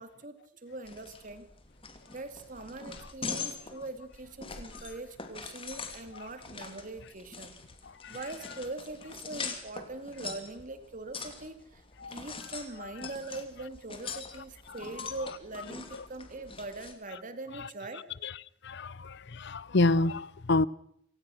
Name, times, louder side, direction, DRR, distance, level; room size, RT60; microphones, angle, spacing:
voice 1, 0.0-1.5 2.1-7.6 8.1-18.1, right 2 dB, 40° right, 2.4 m, -42 dB
sound 1, 0.8-16.9, left 5 dB, 25° left, 2.8 m, -43 dB
voice 2, 18.6-20.7, left 2 dB, 60° left, 0.7 m, -27 dB
27.0 x 17.0 x 6.4 m
head